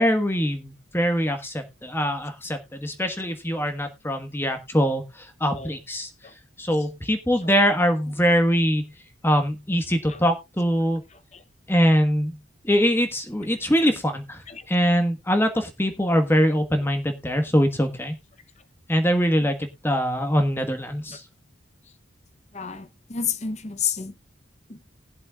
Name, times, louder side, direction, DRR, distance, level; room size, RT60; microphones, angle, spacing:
voice 1, 0.0-6.1 6.6-8.9 9.2-11.0 11.7-12.4 12.6-14.4 14.7-18.1 18.9-21.2, equal, 10° left, 1.3 m, -23 dB
voice 2, 14.5-14.9 19.4-19.5 22.5-24.1 24.7-24.8, left 7 dB, 35° left, 0.8 m, -31 dB
20.0 x 7.5 x 2.4 m
head